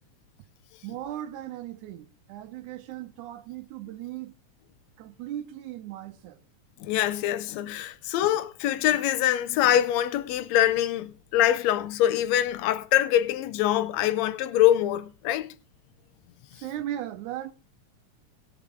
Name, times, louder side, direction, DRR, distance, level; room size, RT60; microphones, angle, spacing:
voice 1, 0.8-4.3 5.0-6.4 16.6-17.5, right 12 dB, 85° right, 2.3 m, -37 dB
voice 2, 6.8-15.5, left 12 dB, 75° left, 1.8 m, -24 dB
19.0 x 7.0 x 3.6 m
omnidirectional pair, 3.4 m